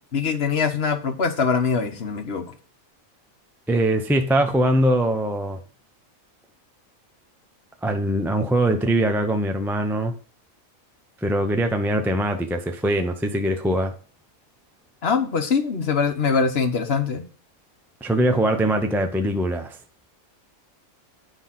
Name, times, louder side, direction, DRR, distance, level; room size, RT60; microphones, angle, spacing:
voice 1, 0.1-2.4 15.0-17.2, left 5 dB, 50° left, 1.2 m, -23 dB
voice 2, 3.7-5.6 7.8-10.1 11.2-13.9 18.0-19.8, right 1 dB, ahead, 0.5 m, -22 dB
9.9 x 5.5 x 5.9 m
omnidirectional pair, 1.5 m